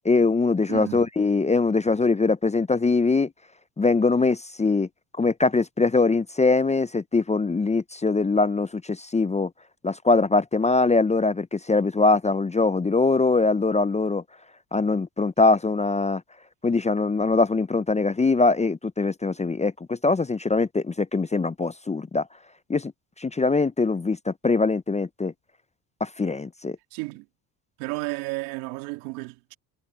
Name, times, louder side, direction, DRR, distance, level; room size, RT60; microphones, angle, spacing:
voice 1, 0.0-3.3 3.8-4.9 5.2-9.5 9.8-14.2 14.7-16.2 16.6-22.3 22.7-22.9 23.2-25.3 26.0-26.8, left 3 dB, 15° left, 0.6 m, -22 dB
voice 2, 0.7-1.1 26.9-27.3 27.8-29.5, right 24 dB, 90° right, 2.4 m, -32 dB
supercardioid pair, 80°, 48 cm